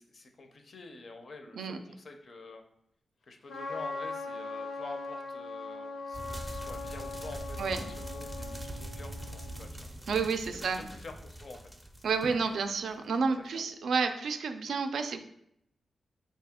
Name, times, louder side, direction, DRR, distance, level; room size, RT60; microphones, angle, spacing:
voice 1, 0.0-2.6 3.3-9.9 10.5-11.7 12.1-12.4 13.5-13.6, left 3 dB, 50° left, 4 dB, 0.5 m, -48 dB
Trumpet, 3.5-9.7, left 3 dB, 90° left, 0.7 m, -40 dB
sound 1, 6.1-12.9, right 1 dB, 5° right, 0.4 m, -43 dB
voice 2, 10.1-10.9 12.0-15.2, right 5 dB, 80° right, 7 dB, 0.3 m, -30 dB
4.1 x 2.8 x 3.5 m, 0.74 s
wide cardioid pair, 120°, 0 cm